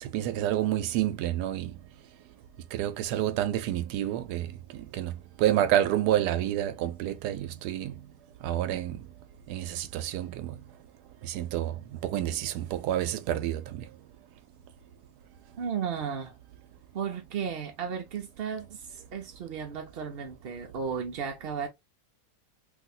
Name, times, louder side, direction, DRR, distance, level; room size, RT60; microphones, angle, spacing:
voice 1, 0.0-1.7 2.7-4.5 4.9-5.1 5.4-7.9 8.4-9.0 9.5-10.5 11.2-11.7 12.0-13.8, right 12 dB, 90° right, 1.1 m, -28 dB
voice 2, 15.6-16.3 16.9-21.7, right 7 dB, 65° right, 0.5 m, -34 dB
3.2 x 2.6 x 2.6 m
omnidirectional pair, 1.7 m